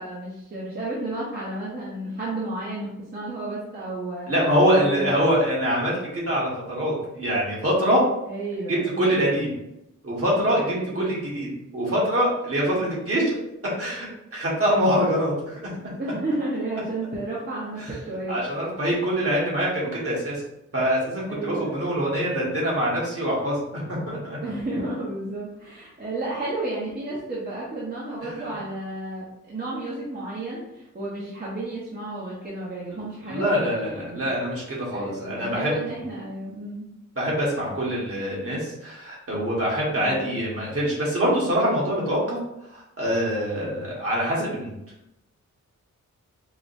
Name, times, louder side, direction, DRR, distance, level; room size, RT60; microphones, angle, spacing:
voice 1, 0.0-4.3 4.7-5.2 8.3-9.1 10.6-11.0 12.7-12.9 16.0-18.4 19.1-19.3 21.3-21.8 24.4-34.3 34.9-36.9 39.9-40.5, right 2 dB, 30° right, -7 dB, 0.8 m, -32 dB
voice 2, 4.3-8.0 8.7-9.5 10.0-13.4 13.8-15.6 18.3-20.4 20.7-24.4 33.2-35.7 37.1-42.4 42.7-44.8, equal, 50° right, -5 dB, 1.4 m, -24 dB
4.8 x 2.2 x 2.6 m, 0.86 s
wide cardioid pair, 100°, 31 cm